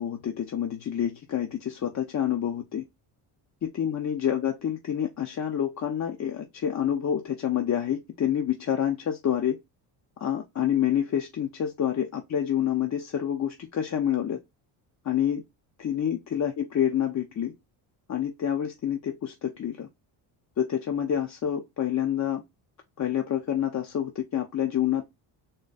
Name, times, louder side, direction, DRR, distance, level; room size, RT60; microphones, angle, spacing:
voice 1, 0.0-2.8 3.6-9.6 10.2-14.4 15.0-15.4 15.8-17.5 18.1-19.9 20.6-22.4 23.0-25.0, left 10 dB, 35° left, 0.7 m, -28 dB
3.9 x 3.2 x 3.9 m
cardioid pair, 100°, 47 cm